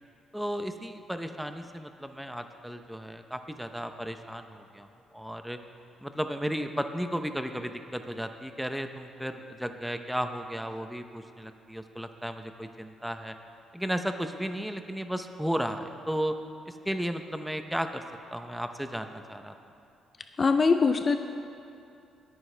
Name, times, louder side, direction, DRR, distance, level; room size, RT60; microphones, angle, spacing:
voice 1, 0.3-4.9 5.1-5.6 6.0-13.3 13.7-16.4 16.7-18.0 18.3-19.5, equal, ahead, 7 dB, 0.7 m, -34 dB
voice 2, 20.4-21.2, left 4 dB, 35° left, 8 dB, 0.5 m, -22 dB
19.5 x 9.4 x 3.3 m, 2.6 s
cardioid pair, 90°, 0 cm